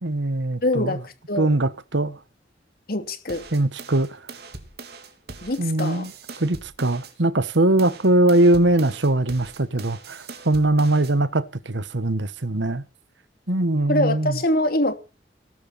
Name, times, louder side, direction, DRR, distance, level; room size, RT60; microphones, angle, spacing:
voice 1, 0.0-1.0 1.4-2.2 3.5-4.2 5.6-6.1 6.4-12.8 13.5-14.4, right 1 dB, 80° right, 1.4 m, -21 dB
voice 2, 0.6-1.5 2.9-3.4 5.4-6.1 13.9-14.9, left 1 dB, 55° left, 2.9 m, -24 dB
sound 1, 3.3-7.1 7.5-11.1, right 4 dB, 60° right, 3.4 m, -41 dB
19.5 x 12.5 x 4.3 m
head